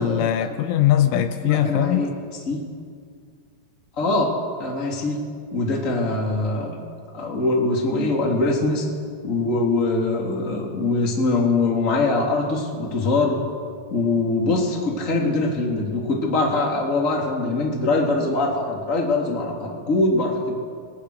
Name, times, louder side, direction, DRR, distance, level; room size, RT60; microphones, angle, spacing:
voice 1, 0.0-2.0, left 11 dB, 80° left, 7 dB, 3.2 m, -20 dB
voice 2, 1.4-2.1 2.4-2.6 4.0-4.3 4.6-5.2 5.5-6.8 7.1-8.9 9.2-13.4 13.9-20.5, left 2 dB, 20° left, -1 dB, 2.7 m, -22 dB
28.0 x 21.5 x 6.5 m, 2.1 s
omnidirectional pair, 5.8 m